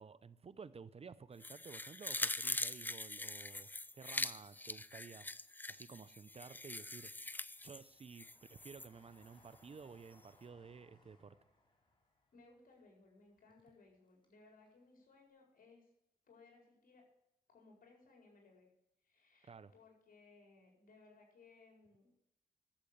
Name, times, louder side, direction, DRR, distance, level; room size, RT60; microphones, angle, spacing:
voice 1, 0.0-5.3 5.7-7.1 7.6-11.4 19.4-19.7, right 5 dB, 40° right, 15 dB, 0.7 m, -54 dB
sound 1, 1.4-8.9 9.2-9.3, left 2 dB, 10° left, 0.5 m, -43 dB
Train, 2.6-3.7 4.1-5.1 5.6-14.4 14.6-14.7, left 2 dB, 30° left, 4.0 m, -72 dB
voice 2, 12.3-15.9 16.3-17.0 17.5-18.7 19.0-22.1, left 3 dB, 70° left, 0 dB, 5.1 m, -64 dB
12.0 x 7.7 x 8.5 m, 0.83 s
cardioid pair, 80°, 15 cm